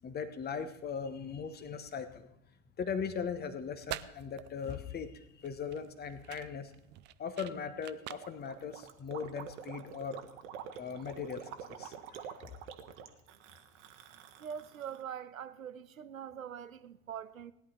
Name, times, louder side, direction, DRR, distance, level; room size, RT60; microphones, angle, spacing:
voice 1, 0.0-2.3 2.8-6.7 7.2-10.2 10.8-12.3, left 6 dB, 25° left, 1.1 m, -39 dB
sound 1, 3.6-9.6, right 14 dB, 30° right, 0.4 m, -47 dB
Gurgling, 8.1-15.0, right 8 dB, 60° right, 1.2 m, -47 dB
voice 2, 14.4-17.5, right 8 dB, 85° right, 0.6 m, -43 dB
17.0 x 10.0 x 4.3 m
figure-of-eight pair, 75°, 40 cm